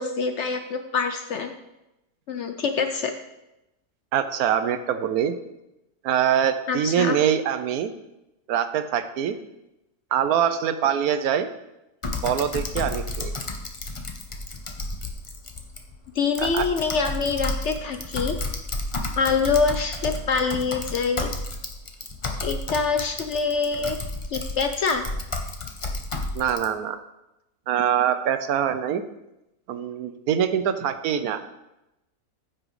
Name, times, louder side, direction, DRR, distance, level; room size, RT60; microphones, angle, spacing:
voice 1, 0.0-1.5 2.3-3.1 6.7-7.2 16.2-18.4 19.2-21.3 22.4-24.0 24.3-25.0, left 5 dB, 60° left, 7 dB, 0.8 m, -25 dB
voice 2, 4.1-5.3 6.0-7.9 8.5-9.4 10.1-11.5 12.2-13.3 16.4-16.7 26.3-27.0 27.7-29.0 29.7-31.4, right 9 dB, 75° right, 10 dB, 1.1 m, -24 dB
Typing, 12.0-26.7, left 2 dB, 30° left, 0.6 m, -32 dB
15.0 x 6.1 x 3.2 m, 0.92 s
omnidirectional pair, 1.6 m